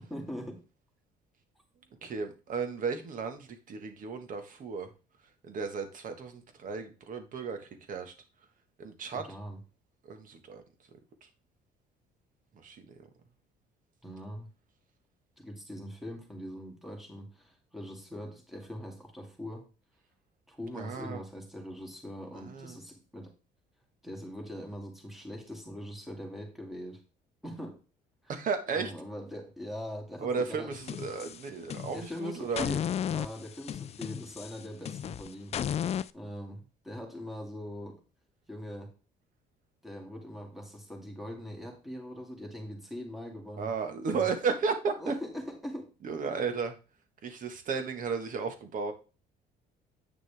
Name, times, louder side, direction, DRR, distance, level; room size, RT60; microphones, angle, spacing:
voice 1, 0.1-0.6 9.3-9.6 14.0-14.5 15.4-19.7 20.5-23.3 24.0-27.0 27.4-27.8 28.7-30.7 31.9-35.6 36.1-38.0 38.5-38.9 39.8-43.7 44.1-44.3 45.0-45.9, equal, ahead, 2.5 m, -41 dB
voice 2, 2.0-4.9 5.4-8.1 8.8-9.3 10.0-10.6 11.2-11.3 12.5-13.1 20.7-21.2 22.3-22.8 28.3-28.9 30.2-32.7 43.6-45.1 46.0-46.8 47.2-48.9, right 5 dB, 50° right, 1.7 m, -34 dB
sound 1, 30.7-32.1 32.6-36.1, left 9 dB, 40° left, 0.4 m, -34 dB
8.9 x 6.4 x 3.6 m
cardioid pair, 110°, 17 cm